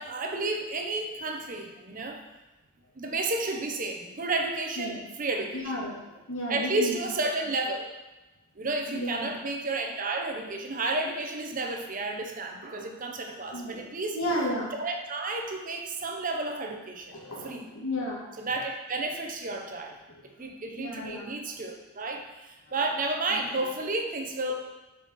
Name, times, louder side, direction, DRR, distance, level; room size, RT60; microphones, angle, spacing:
voice 1, 0.0-2.2 2.9-5.7 6.5-7.9 8.6-14.2 14.7-17.1 17.4-17.7 18.4-20.0 20.4-24.5, right 2 dB, 40° right, 3 dB, 0.7 m, -32 dB
voice 2, 5.6-6.9 8.9-9.3 13.5-13.8 14.1-14.7 17.1-18.2 20.1-20.2 20.8-21.3, equal, 80° left, -6 dB, 2.4 m, -33 dB
7.4 x 4.9 x 4.1 m, 1.1 s
head